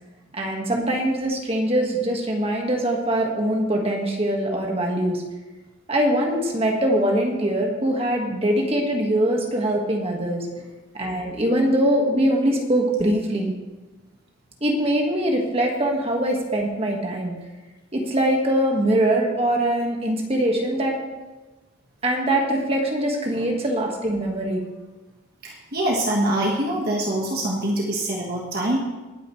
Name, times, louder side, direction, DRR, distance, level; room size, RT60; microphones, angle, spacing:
voice 1, 0.3-5.2 5.9-10.5 10.9-13.5 14.6-17.3 17.9-20.9 22.0-24.6, right 1 dB, 30° right, 0 dB, 1.7 m, -22 dB
voice 2, 25.4-28.8, right 1 dB, 45° right, -2 dB, 1.5 m, -24 dB
20.0 x 9.2 x 3.2 m, 1.2 s
head